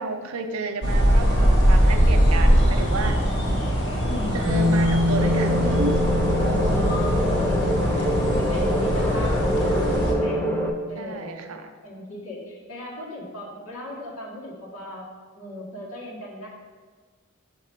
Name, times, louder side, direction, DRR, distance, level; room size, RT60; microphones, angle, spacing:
voice 1, 0.0-3.2 4.3-6.2 11.0-11.7, right 3 dB, 75° right, 7 dB, 0.5 m, -31 dB
sound 1, 0.8-10.1, equal, 55° left, 1.1 m, -21 dB
voice 2, 3.4-3.7 4.0-4.5 6.7-10.4 10.9-11.5 11.8-15.1 15.3-16.5, left 1 dB, 90° left, -6 dB, 1.7 m, -35 dB
Bass guitar, 4.5-10.7, left 2 dB, 25° right, 0.8 m, -27 dB
sound 2, 5.2-10.7, equal, 10° left, 0.4 m, -26 dB
5.9 x 2.9 x 5.5 m, 1.4 s
head